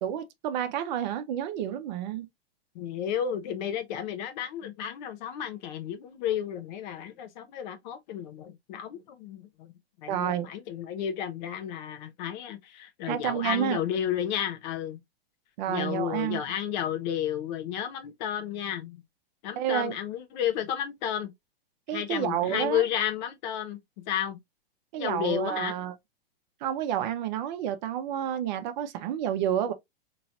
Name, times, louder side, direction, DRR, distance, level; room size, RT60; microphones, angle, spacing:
voice 1, 0.0-2.3 10.1-10.5 13.1-13.8 15.6-16.4 19.6-19.9 21.9-22.8 24.9-25.9 26.6-29.7, right 10 dB, 50° right, 0.8 m, -30 dB
voice 2, 2.7-9.7 10.0-15.0 15.7-19.0 19.4-21.3 21.9-23.8 24.1-24.4 25.0-25.7, left 9 dB, 50° left, 0.9 m, -32 dB
4.0 x 3.1 x 2.6 m
hypercardioid pair, 110°, 30 cm